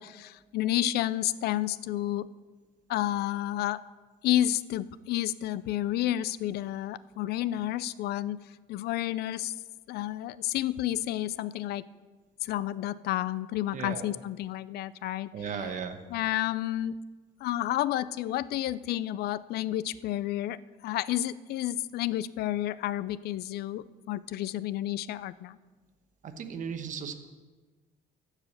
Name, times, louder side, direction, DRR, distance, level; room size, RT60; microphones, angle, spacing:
voice 1, 0.0-2.3 2.9-3.8 4.2-8.4 8.7-9.5 9.9-11.8 12.4-15.3 16.1-16.9 17.4-20.6 20.8-25.6, left 13 dB, 70° left, 18 dB, 0.4 m, -30 dB
voice 2, 13.7-14.1 15.3-16.0 26.2-27.1, right 6 dB, 50° right, 7 dB, 1.1 m, -36 dB
14.5 x 4.9 x 6.5 m, 1.3 s
cardioid pair, 110°, 17 cm